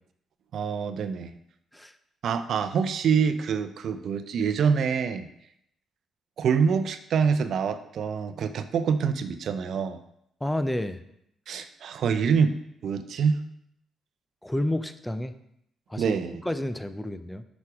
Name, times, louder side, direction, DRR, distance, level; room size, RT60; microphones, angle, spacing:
voice 1, 0.5-1.3 2.2-5.3 6.4-10.0 11.5-12.5 12.8-13.4 16.0-16.4, right 6 dB, 70° right, 10 dB, 0.7 m, -25 dB
voice 2, 10.4-11.0 14.4-15.3 15.9-16.1 16.4-17.4, left 1 dB, 10° left, 10 dB, 0.8 m, -30 dB
8.1 x 6.2 x 5.0 m, 0.75 s
supercardioid pair, 60°, 0 cm